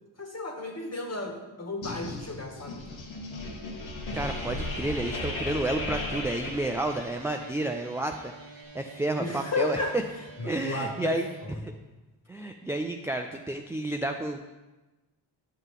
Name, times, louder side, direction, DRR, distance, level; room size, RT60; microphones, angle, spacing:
voice 1, 0.2-2.8 9.2-9.9 10.4-11.7, left 2 dB, 30° left, 2 dB, 1.7 m, -33 dB
sound 1, 1.8-7.5, left 2 dB, 70° left, 1.7 m, -36 dB
voice 2, 4.1-9.8 10.4-11.3 11.6-11.7 12.3-14.5, right 2 dB, 5° right, 4 dB, 0.4 m, -31 dB
sound 2, 4.1-11.6, right 3 dB, 45° right, 1.1 m, -47 dB
9.6 x 5.6 x 3.6 m, 1.1 s
cardioid pair, 60°, 49 cm